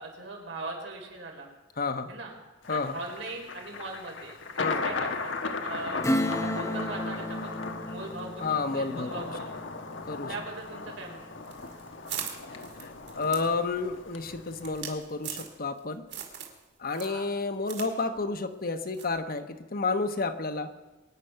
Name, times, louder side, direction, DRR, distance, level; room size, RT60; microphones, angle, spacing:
voice 1, 0.0-1.5 2.1-2.3 2.7-6.0 6.4-7.6 7.9-9.8 10.3-11.3 16.9-17.3, right 2 dB, 85° right, 1 dB, 4.2 m, -40 dB
voice 2, 1.8-2.1 2.7-3.0 4.6-4.8 8.4-9.1 10.1-10.3 12.8-16.0 16.8-20.7, left 4 dB, 50° left, 8 dB, 1.1 m, -30 dB
Thunder, 2.6-14.9, left 4 dB, 85° left, 1.3 m, -37 dB
Acoustic guitar / Strum, 6.0-12.2 12.6-12.7, left 1 dB, 15° left, 0.9 m, -34 dB
sound 1, 11.5-15.8 16.1-16.6 16.9-17.9 18.2-18.3 18.9-19.2, right 8 dB, 65° right, 2.6 m, -40 dB
23.0 x 9.5 x 5.8 m, 1.1 s
head